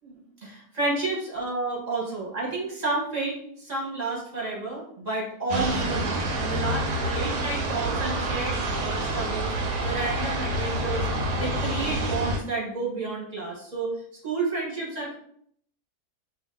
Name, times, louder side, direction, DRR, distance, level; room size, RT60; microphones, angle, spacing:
voice 1, 0.0-9.5 9.8-11.1 11.4-14.0 14.2-15.2, right 3 dB, 35° right, -4 dB, 0.9 m, -31 dB
sound 1, 5.5-12.4, right 1 dB, 80° right, 1.1 m, -27 dB
2.7 x 2.3 x 3.5 m, 0.65 s
omnidirectional pair, 1.6 m